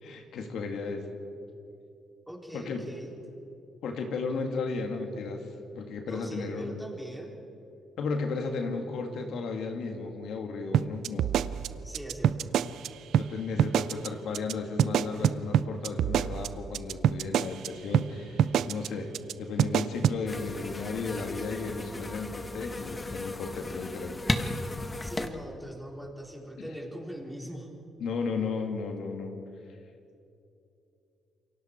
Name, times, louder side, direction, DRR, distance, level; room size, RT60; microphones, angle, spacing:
voice 1, 0.0-1.2 2.5-2.8 3.8-5.4 5.8-6.7 8.0-11.3 13.2-19.1 19.4-24.1 26.6-26.7 28.0-29.3, left 4 dB, 75° left, 3 dB, 2.4 m, -34 dB
voice 2, 2.3-3.1 6.0-7.4 11.8-12.5 25.0-27.7, equal, ahead, 0 dB, 3.9 m, -41 dB
sound 1, 10.7-12.9 13.1-13.3 13.6-14.1 14.3-14.5 14.8-17.7 17.9-18.1 18.4-18.9 19.1-19.3 19.6-20.2, right 10 dB, 75° right, 0.6 m, -25 dB
sound 2, 20.3-25.3, left 2 dB, 20° left, 1.6 m, -35 dB
28.0 x 23.0 x 4.7 m, 2.7 s
cardioid pair, 90°, 0 cm